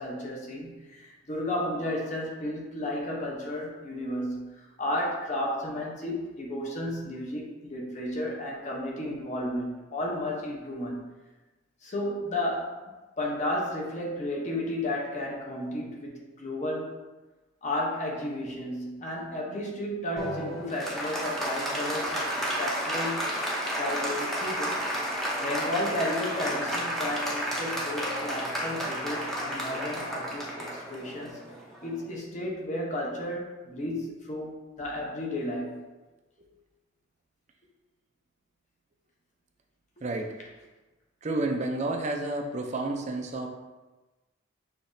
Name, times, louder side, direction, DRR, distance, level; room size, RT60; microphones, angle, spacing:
voice 1, 0.0-11.1 11.8-12.8 13.2-16.9 17.6-23.4 23.8-24.8 25.4-31.4 31.8-35.9, left 1 dB, 40° left, -2 dB, 0.8 m, -33 dB
Applause, 20.2-32.0, equal, ahead, 0.7 m, -32 dB
voice 2, 40.0-40.3 41.2-43.5, right 2 dB, 35° right, 2 dB, 0.5 m, -30 dB
5.8 x 3.0 x 2.6 m, 1.2 s
head